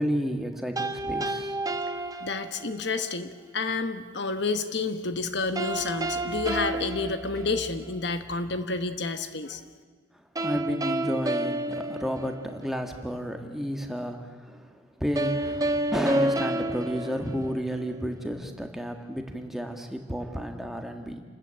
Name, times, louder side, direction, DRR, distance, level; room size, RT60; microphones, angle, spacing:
voice 1, 0.0-1.6 10.1-21.2, equal, ahead, 4 dB, 1.6 m, -32 dB
sound 1, 0.8-2.9 5.6-8.0 10.4-12.9 15.2-18.0, right 1 dB, 20° right, 0.9 m, -30 dB
voice 2, 2.2-9.6, left 3 dB, 55° left, 9 dB, 1.1 m, -30 dB
28.5 x 13.5 x 8.9 m, 1.5 s
head